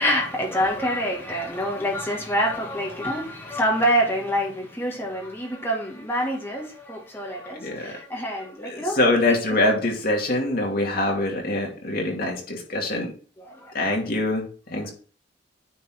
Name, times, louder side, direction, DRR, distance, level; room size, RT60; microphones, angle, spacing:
voice 1, 0.0-9.4 10.9-11.1 13.4-13.7 14.8-14.9, equal, 15° left, 2.1 m, -26 dB
voice 2, 7.6-7.9 8.6-13.1 13.7-14.4 14.7-14.9, left 2 dB, 55° left, 2.2 m, -24 dB
9.4 x 4.0 x 4.6 m
head